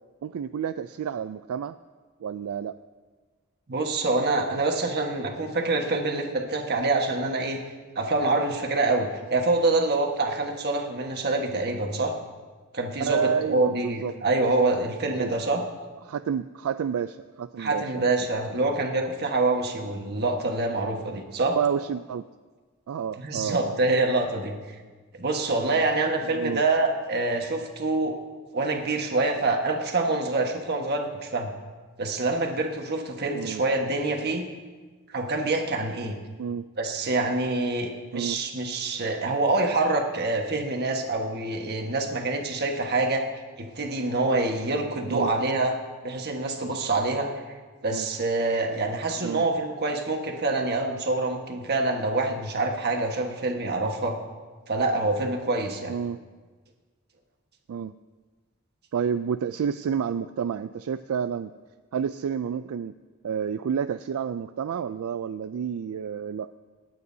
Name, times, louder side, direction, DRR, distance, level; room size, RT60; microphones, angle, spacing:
voice 1, 0.2-1.8 2.2-2.8 13.0-14.1 15.2-15.3 16.0-18.1 21.4-22.2 22.9-23.8 25.7-25.8 26.3-26.6 33.3-33.6 36.4-36.6 38.1-38.4 45.1-45.3 47.9-48.1 49.2-49.4 55.9-56.2 57.7-57.9 58.9-61.5 61.9-62.9 63.2-66.6, right 7 dB, 75° right, 11 dB, 0.3 m, -30 dB
voice 2, 3.7-7.6 7.9-12.1 12.7-15.6 17.6-21.6 23.2-24.6 25.2-28.1 28.5-31.5 32.0-34.4 35.1-36.2 36.8-43.2 43.6-45.7 46.0-47.3 47.8-54.2 54.7-55.9, right 2 dB, 50° right, 3 dB, 1.4 m, -26 dB
27.0 x 9.5 x 2.7 m, 1.4 s
head